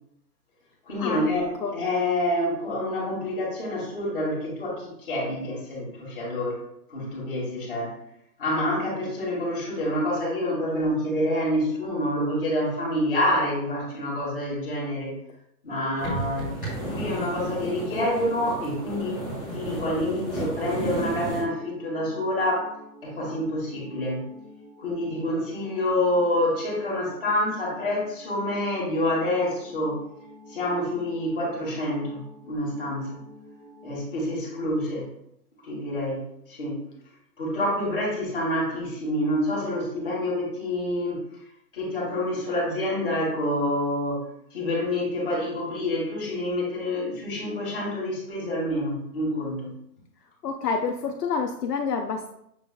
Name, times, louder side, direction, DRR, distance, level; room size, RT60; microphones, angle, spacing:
voice 1, 0.8-6.6 6.9-7.9 8.4-15.1 15.6-16.6 16.9-19.1 19.5-22.8 23.0-24.3 24.8-30.0 30.5-33.2 33.8-35.1 35.6-36.2 36.5-36.8 37.4-41.2 41.7-49.7, left 1 dB, 35° left, -4 dB, 1.6 m, -27 dB
sound 1, 15.7-33.9, equal, 5° left, 1.4 m, -49 dB
sound 2, 16.0-21.4, right 1 dB, 15° right, 0.8 m, -33 dB
voice 2, 50.4-52.3, left 5 dB, 70° left, 4 dB, 0.6 m, -28 dB
6.8 x 3.1 x 2.3 m, 0.75 s
hypercardioid pair, 175°, 50 cm